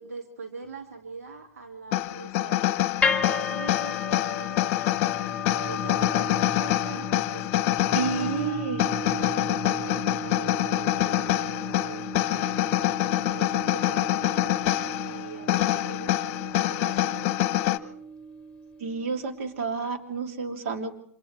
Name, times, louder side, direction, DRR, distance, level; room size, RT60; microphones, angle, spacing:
voice 1, 0.0-2.8 3.2-4.7 5.4-8.6 9.1-12.6 13.3-17.3, right 4 dB, 80° right, 3 dB, 2.3 m, -42 dB
sound 1, 1.9-17.8, left 15 dB, 45° left, 1.1 m, -26 dB
sound 2, 3.0-19.2, left 2 dB, 15° left, 2.0 m, -35 dB
voice 2, 7.9-8.8 18.8-20.9, right 5 dB, 60° right, 4 dB, 3.0 m, -30 dB
29.5 x 26.5 x 3.3 m, 0.66 s
hypercardioid pair, 105°, 8 cm